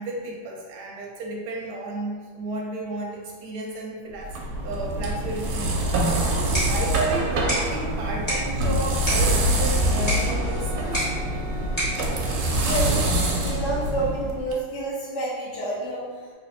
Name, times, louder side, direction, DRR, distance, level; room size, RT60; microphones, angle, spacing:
voice 1, 0.0-5.9 6.2-11.0, right 2 dB, 65° right, -2 dB, 1.1 m, -32 dB
sound 1, 4.2-14.5, right 1 dB, 90° right, 1.4 m, -25 dB
sound 2, 6.2-13.2, equal, 10° left, 1.1 m, -32 dB
Wind instrument woodwind instrument, 9.5-13.8, left 2 dB, 40° left, 0.8 m, -42 dB
voice 2, 12.6-12.9 13.3-16.3, right 1 dB, 80° left, -5 dB, 0.6 m, -29 dB
3.3 x 2.8 x 2.6 m, 1.5 s
omnidirectional pair, 2.2 m